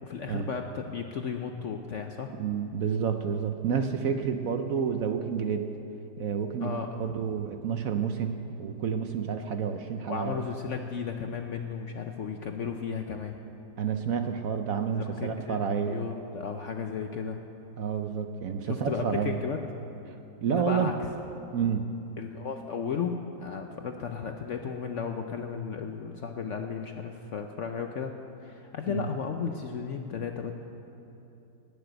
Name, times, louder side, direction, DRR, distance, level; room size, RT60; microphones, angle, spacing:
voice 1, 0.0-2.3 6.6-6.9 10.1-13.4 14.9-15.6 15.9-17.4 18.7-19.6 20.5-20.9 22.2-28.2 28.4-30.5, left 6 dB, 60° left, 5 dB, 0.8 m, -34 dB
voice 2, 2.4-5.7 6.2-10.4 13.8-16.0 17.8-19.4 20.4-20.9 21.5-21.9 28.9-29.1, right 7 dB, 65° right, 7 dB, 1.0 m, -29 dB
18.0 x 6.9 x 9.0 m, 2.9 s
omnidirectional pair, 1.9 m